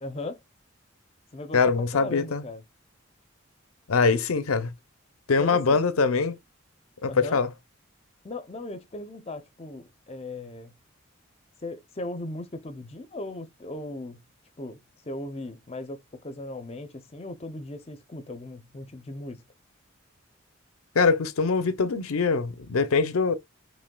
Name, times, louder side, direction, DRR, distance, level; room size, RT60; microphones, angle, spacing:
voice 1, 0.0-0.4 1.3-2.6 5.4-5.8 7.1-7.4 8.2-10.7 11.6-14.2 14.6-19.5, left 2 dB, 30° left, 0.5 m, -38 dB
voice 2, 1.5-2.4 3.9-4.7 5.3-6.3 7.0-7.5 20.9-23.3, left 4 dB, 85° left, 0.6 m, -23 dB
5.1 x 3.1 x 2.2 m
head